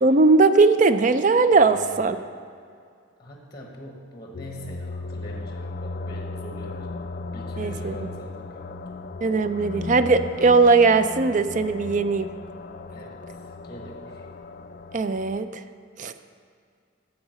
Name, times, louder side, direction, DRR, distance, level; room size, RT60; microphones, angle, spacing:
voice 1, 0.0-2.2 7.6-7.9 9.2-12.3 14.9-15.5 16.0-16.1, right 3 dB, 40° right, 11 dB, 0.4 m, -19 dB
voice 2, 1.5-2.3 3.2-9.0 12.9-14.3, equal, 20° left, 1 dB, 1.0 m, -42 dB
sound 1, 4.3-15.4, left 3 dB, 40° left, 0.3 m, -36 dB
8.6 x 7.2 x 6.3 m, 2.3 s
head